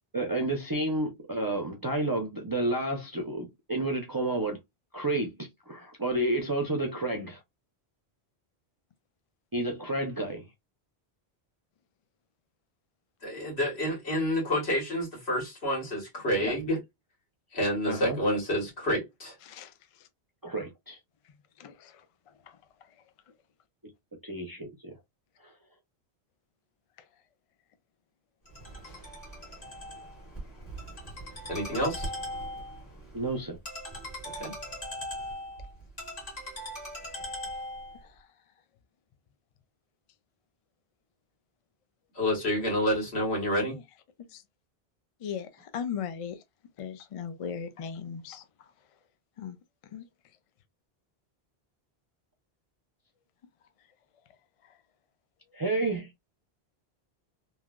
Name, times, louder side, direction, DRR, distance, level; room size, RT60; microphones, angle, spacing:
voice 1, 0.1-4.6 4.9-7.4 9.5-10.5 16.4-16.5 17.9-18.2 20.4-21.0 24.2-24.9 33.1-33.6 55.5-56.1, right 2 dB, 35° right, 0.3 m, -30 dB
voice 2, 13.2-16.8 17.5-19.4 31.5-32.1 34.4-34.5 42.2-43.7, equal, 85° left, 1.8 m, -28 dB
voice 3, 19.4-20.1 21.6-22.0 22.5-22.6 34.4-34.5 38.0-38.1 43.7-43.8 44.3-44.4 45.2-46.4 46.8-48.7 49.4-49.6 49.9-50.1 54.6-54.7, left 7 dB, 60° left, 0.3 m, -38 dB
Ringtone, 28.5-38.0, equal, 40° left, 1.5 m, -40 dB
3.1 x 2.2 x 2.3 m
omnidirectional pair, 1.1 m